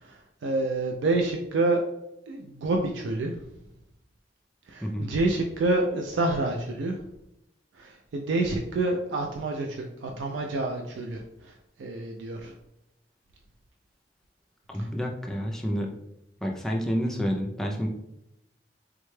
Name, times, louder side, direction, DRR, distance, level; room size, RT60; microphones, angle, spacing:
voice 1, 0.0-1.8 2.3-3.3 4.7-7.0 7.8-11.5 11.8-12.5 14.8-14.9, right 2 dB, 85° right, 2 dB, 0.4 m, -28 dB
voice 2, 14.7-15.9 16.4-17.9, equal, 5° left, 0 dB, 0.3 m, -29 dB
3.6 x 2.2 x 3.1 m, 0.85 s
head